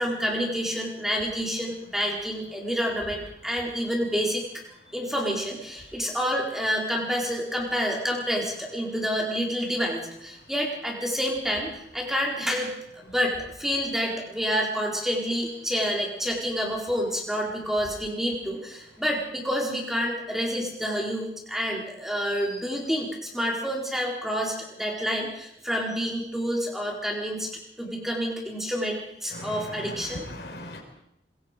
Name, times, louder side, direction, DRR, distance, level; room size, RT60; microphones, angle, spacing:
voice 1, 0.0-4.4 4.9-27.5 27.8-30.2, equal, ahead, -1 dB, 4.2 m, -28 dB
voice 2, 29.3-30.8, left 1 dB, 65° left, 1 dB, 4.9 m, -38 dB
25.5 x 22.0 x 5.2 m, 0.78 s
head